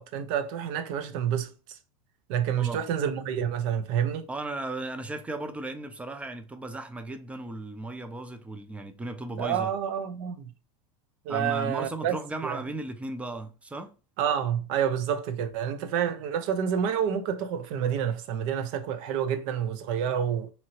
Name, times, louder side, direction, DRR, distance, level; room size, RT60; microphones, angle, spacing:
voice 1, 0.0-1.5 2.3-4.3 9.4-10.5 11.3-12.2 12.4-12.6 14.2-20.5, right 8 dB, 60° right, 0.6 m, -28 dB
voice 2, 4.3-9.7 11.3-13.9, right 2 dB, 5° right, 0.3 m, -36 dB
2.9 x 2.6 x 2.8 m
supercardioid pair, 120°, 19 cm